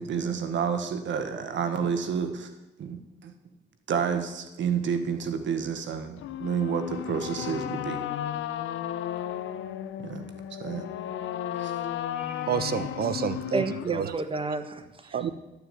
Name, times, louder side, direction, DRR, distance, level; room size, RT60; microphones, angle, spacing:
voice 1, 0.0-2.5 2.8-3.3 3.9-8.0 10.0-10.3 10.6-10.9 11.6-11.7 15.2-15.3, right 7 dB, 70° right, 8 dB, 1.7 m, -30 dB
sound 1, 6.2-14.2, left 11 dB, 80° left, 0.8 m, -34 dB
voice 2, 12.2-14.1 15.1-15.3, right 7 dB, 50° right, 13 dB, 1.0 m, -29 dB
voice 3, 13.5-15.3, right 3 dB, 25° right, 9 dB, 1.4 m, -31 dB
12.0 x 6.9 x 9.3 m, 1.0 s
cardioid pair, 90°, 20 cm